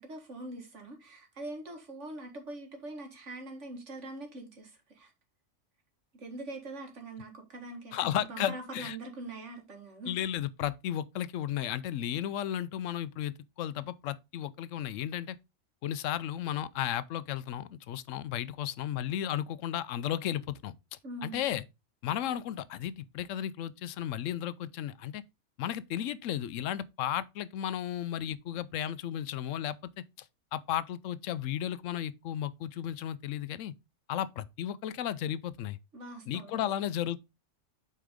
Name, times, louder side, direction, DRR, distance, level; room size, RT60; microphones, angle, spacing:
voice 1, 0.0-5.1 6.1-10.1 21.0-21.5 35.9-36.7, right 2 dB, 70° right, 2.0 m, -43 dB
voice 2, 7.9-9.0 10.1-15.4 15.8-20.7 21.2-21.6 22.0-25.2 25.6-30.3 30.5-33.7 34.1-35.8 36.3-37.2, left 11 dB, 90° left, 0.9 m, -34 dB
8.3 x 4.4 x 3.6 m
omnidirectional pair, 1.3 m